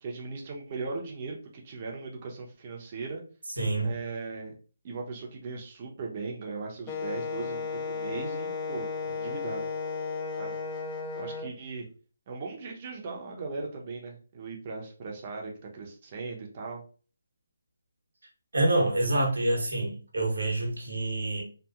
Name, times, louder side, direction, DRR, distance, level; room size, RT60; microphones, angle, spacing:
voice 1, 0.0-3.2 3.8-4.5 4.8-9.7 10.4-10.6 11.1-11.9 12.3-16.8, right 4 dB, 35° right, 0.7 m, -38 dB
voice 2, 3.6-3.9 18.5-21.4, right 2 dB, 85° right, 1.0 m, -27 dB
Wind instrument woodwind instrument, 6.9-11.5, left 5 dB, 20° left, 0.3 m, -34 dB
2.8 x 2.4 x 2.3 m
figure-of-eight pair, 155°, 0 cm